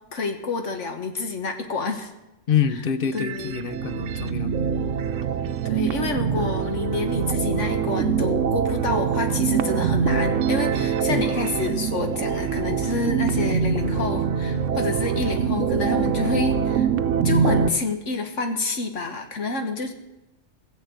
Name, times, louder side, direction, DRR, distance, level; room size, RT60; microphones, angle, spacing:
voice 1, 0.1-2.1 3.1-3.6 5.6-16.9 17.2-19.9, left 3 dB, 75° left, 5 dB, 1.6 m, -28 dB
voice 2, 2.5-4.5 5.4-5.6 11.1-11.3, left 8 dB, 50° left, 12 dB, 0.9 m, -26 dB
sound 1, 3.0-17.7, right 7 dB, 90° right, 1.0 m, -24 dB
16.5 x 7.3 x 8.0 m, 0.98 s
omnidirectional pair, 1.3 m